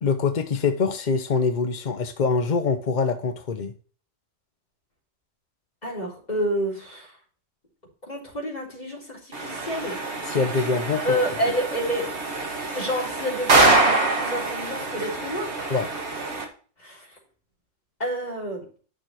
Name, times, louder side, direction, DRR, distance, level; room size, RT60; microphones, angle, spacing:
voice 1, 0.0-3.7 10.3-11.0 15.7-15.9, left 4 dB, 50° left, 8 dB, 0.5 m, -24 dB
voice 2, 5.8-7.2 8.1-10.4 11.0-12.1 12.6-15.5 16.8-17.2 18.0-18.6, equal, 25° left, -3 dB, 3.7 m, -29 dB
sound 1, 9.3-16.4, right 3 dB, 45° right, 2.2 m, -25 dB
10.5 x 6.5 x 3.0 m, 0.40 s
omnidirectional pair, 1.6 m